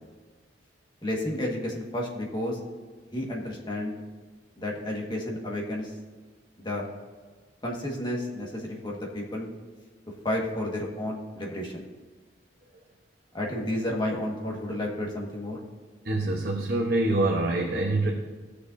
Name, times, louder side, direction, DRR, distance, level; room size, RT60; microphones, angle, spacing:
voice 1, 1.0-2.6 3.1-4.0 4.6-5.9 6.6-6.9 7.6-9.5 10.2-11.9 13.3-15.6, left 1 dB, 25° left, -2 dB, 1.6 m, -31 dB
voice 2, 16.0-18.1, right 2 dB, 55° right, -1 dB, 1.0 m, -25 dB
17.0 x 6.7 x 2.7 m, 1.4 s
head